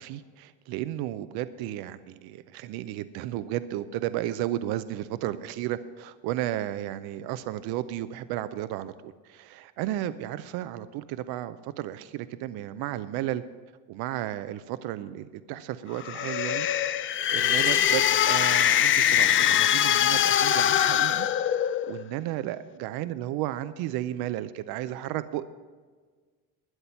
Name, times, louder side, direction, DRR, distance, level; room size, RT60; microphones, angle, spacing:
voice 1, 0.0-13.4 13.9-16.7 16.9-21.3 21.9-25.4, right 13 dB, 70° right, 13 dB, 0.6 m, -33 dB
sound 1, 16.0-22.0, left 10 dB, 35° left, 0.4 m, -23 dB
12.5 x 10.0 x 5.6 m, 1.5 s
cardioid pair, 120°, 38 cm